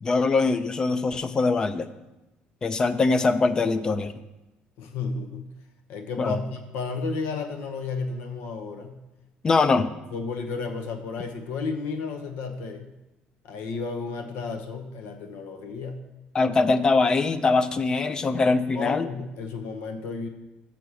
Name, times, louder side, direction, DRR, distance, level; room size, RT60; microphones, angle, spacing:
voice 1, 0.0-1.9 2.6-4.1 6.2-6.4 9.4-9.9 16.3-19.1, left 3 dB, 20° left, 13 dB, 0.4 m, -22 dB
voice 2, 4.8-5.4 5.9-9.0 9.7-12.8 13.4-16.0 18.7-20.3, left 4 dB, 85° left, 6 dB, 0.8 m, -33 dB
6.9 x 5.9 x 6.3 m, 0.99 s
cardioid pair, 165°, 4 cm